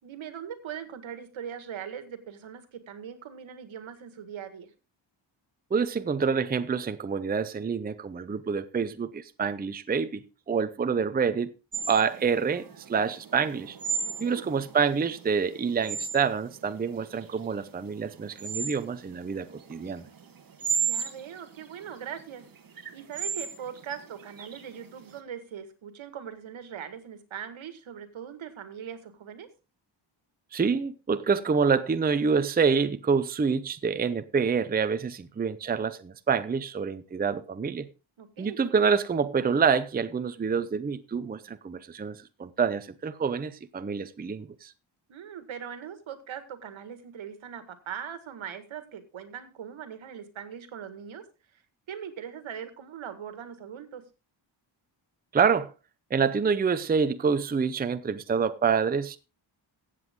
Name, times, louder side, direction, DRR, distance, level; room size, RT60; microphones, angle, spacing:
voice 1, 0.0-4.7 14.0-14.4 20.8-22.4 22.9-29.5 38.2-38.6 45.1-51.2 51.5-51.6 51.9-54.0, right 8 dB, 85° right, 1.9 m, -41 dB
voice 2, 5.7-10.2 10.5-11.5 11.9-13.8 14.2-20.1 30.5-37.9 38.4-44.7 55.3-55.7 56.1-59.2, right 5 dB, 20° right, 0.6 m, -27 dB
sound 1, 11.7-25.1, right 6 dB, 45° right, 1.5 m, -35 dB
15.5 x 8.0 x 3.6 m
wide cardioid pair, 135°, 46 cm